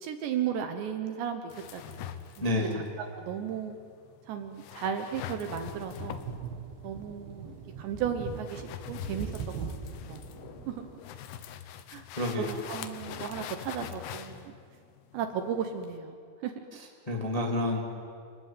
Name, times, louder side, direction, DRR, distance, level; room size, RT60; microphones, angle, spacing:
voice 1, 0.0-2.2 2.7-3.8 4.3-6.2 6.8-10.2 10.7-10.9 11.9-12.1 12.4-14.5 15.1-16.5, right 8 dB, 70° right, 7 dB, 2.9 m, -35 dB
sound 1, 1.5-16.0, left 10 dB, 75° left, 2.5 m, -44 dB
voice 2, 2.4-2.9 12.1-12.6 16.7-17.8, left 1 dB, 15° left, -1 dB, 1.6 m, -30 dB
sound 2, 5.6-11.0, right 5 dB, 55° right, 3.3 m, -41 dB
29.5 x 20.5 x 9.3 m, 2.3 s
omnidirectional pair, 6.0 m